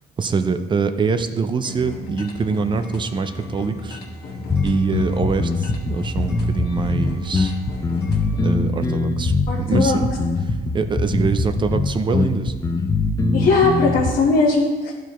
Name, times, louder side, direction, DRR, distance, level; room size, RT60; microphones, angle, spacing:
voice 1, 0.2-4.0 4.6-7.5 8.4-10.1 10.4-12.5, right 5 dB, 30° right, 9 dB, 0.5 m, -24 dB
sound 1, 1.6-8.5, left 2 dB, 70° left, 1.5 m, -35 dB
sound 2, 4.5-14.1, left 3 dB, 20° left, 0.6 m, -22 dB
voice 2, 9.5-10.0 13.3-14.9, left 3 dB, 55° left, -5 dB, 1.3 m, -19 dB
12.0 x 4.6 x 3.0 m, 1.4 s
cardioid pair, 110°, 17 cm